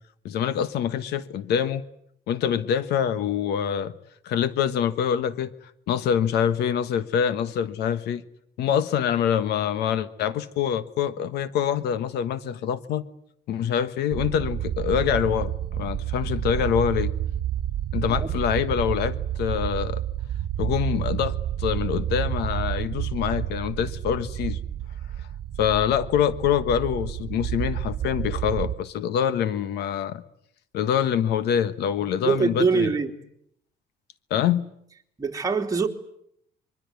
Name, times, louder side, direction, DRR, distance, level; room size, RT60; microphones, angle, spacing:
voice 1, 0.2-1.8 2.3-3.9 4.2-5.5 5.9-8.2 8.6-13.0 13.5-17.1 17.9-20.0 20.6-24.6 25.6-30.2 30.7-33.0 34.3-34.7, left 9 dB, 80° left, 1.4 m, -25 dB
sound 1, 14.1-28.8, right 11 dB, 65° right, 1.6 m, -30 dB
voice 2, 32.2-33.1 35.2-35.9, right 5 dB, 20° right, 3.0 m, -23 dB
26.0 x 23.0 x 9.6 m
cardioid pair, 110°, 17 cm